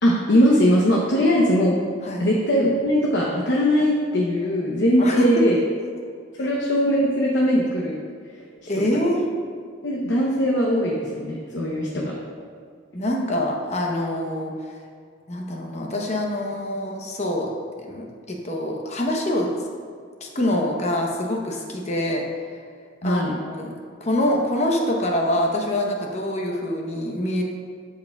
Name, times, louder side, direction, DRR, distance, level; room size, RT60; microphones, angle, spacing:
voice 1, 0.0-1.8 2.2-5.6 6.4-8.0 9.8-12.1 23.0-23.4, equal, 70° left, -3 dB, 0.8 m, -20 dB
voice 2, 5.0-5.3 6.4-6.5 8.7-9.2 12.9-14.5 15.3-17.5 17.8-19.5 20.2-22.3 23.0-23.7 24.0-27.4, left 1 dB, 35° left, 0 dB, 0.9 m, -25 dB
13.0 x 4.7 x 2.3 m, 2.1 s
head